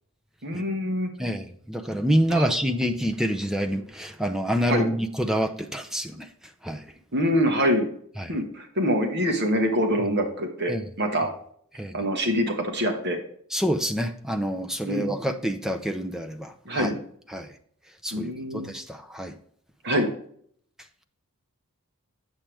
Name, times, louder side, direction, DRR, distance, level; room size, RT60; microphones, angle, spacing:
voice 1, 0.4-1.1 2.3-2.5 4.7-4.9 7.1-7.9 8.3-11.3 11.9-13.2 14.9-15.1 16.6-17.0 18.1-18.7 19.8-20.1, equal, 50° right, 1.4 m, -25 dB
voice 2, 1.2-6.3 6.6-6.8 8.2-8.3 10.7-10.8 11.8-11.9 13.5-16.5 16.8-16.9 17.3-17.5 18.0-19.3, equal, ahead, 0.5 m, -27 dB
8.6 x 7.4 x 3.4 m
head